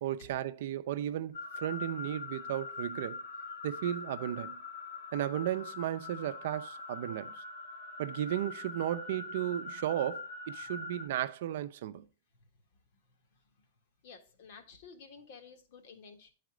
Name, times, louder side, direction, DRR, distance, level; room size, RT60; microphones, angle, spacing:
voice 1, 0.0-3.2 3.6-4.6 5.1-7.4 8.0-12.0, right 11 dB, 60° right, 0.6 m, -35 dB
sound 1, 1.3-11.1, left 3 dB, 85° left, 1.7 m, -43 dB
voice 2, 12.9-13.6 14.0-16.3, left 5 dB, 55° left, 1.7 m, -53 dB
10.5 x 4.2 x 4.9 m
supercardioid pair, 160°, 0 cm